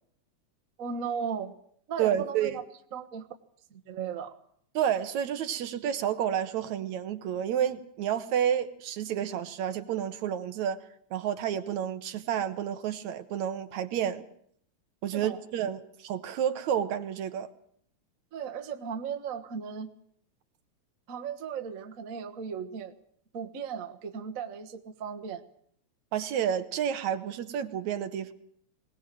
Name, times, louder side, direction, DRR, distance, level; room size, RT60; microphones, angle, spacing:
voice 1, 0.8-1.5 1.9-2.6 2.9-3.3 3.7-4.3 15.1-15.4 18.3-19.9 21.1-22.9 23.3-25.4, right 7 dB, 40° right, 5 dB, 1.2 m, -36 dB
voice 2, 2.0-2.6 4.7-10.9 11.1-14.3 15.0-17.5 26.1-28.3, right 9 dB, 75° right, 10 dB, 2.5 m, -30 dB
20.5 x 19.0 x 7.6 m, 0.65 s
omnidirectional pair, 3.3 m